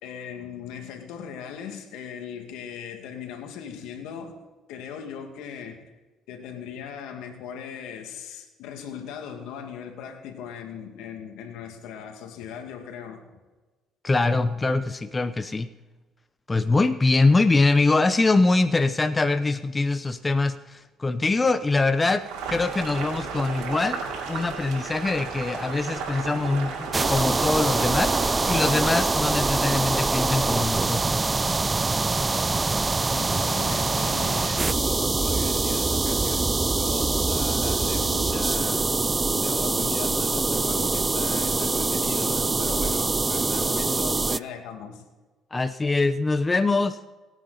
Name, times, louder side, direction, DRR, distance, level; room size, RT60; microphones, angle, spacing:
voice 1, 0.0-4.4 4.7-5.8 6.3-13.2 33.1-38.9 39.3-45.0, left 7 dB, 85° left, 4 dB, 2.3 m, -38 dB
voice 2, 14.0-15.7 16.5-22.2 22.5-24.0 24.3-31.2 45.5-47.0, left 3 dB, 25° left, 11 dB, 0.8 m, -23 dB
Boiling, 22.2-29.0, right 5 dB, 85° right, 4.9 m, -34 dB
sound 1, 26.9-44.4, right 3 dB, 25° right, 0.4 m, -24 dB
25.0 x 9.3 x 4.2 m, 1.2 s
supercardioid pair, 80°, 0 cm